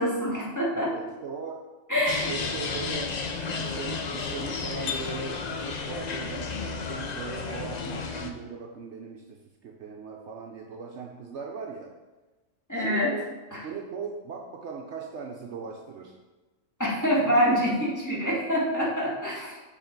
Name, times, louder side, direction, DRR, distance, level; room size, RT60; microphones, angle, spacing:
voice 1, 0.0-0.9 1.9-2.3 12.7-13.1 13.5-13.6 16.8-19.5, equal, 15° left, -7 dB, 1.8 m, -25 dB
voice 2, 0.7-1.6 2.0-3.2 3.6-6.6 6.9-11.9 12.7-13.2 13.6-16.2 17.2-17.4, right 5 dB, 65° right, 1 dB, 0.9 m, -39 dB
sound 1, 2.1-8.3, left 4 dB, 55° left, 0.4 m, -32 dB
7.8 x 4.2 x 4.5 m, 1.2 s
omnidirectional pair, 1.4 m